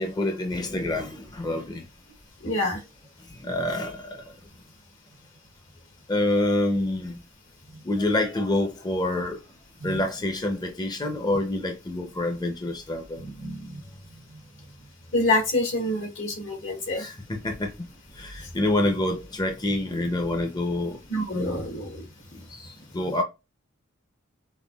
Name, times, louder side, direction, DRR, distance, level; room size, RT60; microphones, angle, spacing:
voice 1, 0.0-1.8 2.5-2.6 3.3-4.2 6.1-7.2 7.9-9.4 9.8-13.2 17.0-17.7 18.2-21.0 22.9-23.2, left 1 dB, 20° left, 0.5 m, -27 dB
voice 2, 2.4-2.8 9.8-10.0 13.2-13.8 15.1-17.1 21.1-22.0, left 1 dB, 75° left, 1.7 m, -27 dB
5.5 x 2.2 x 2.3 m
head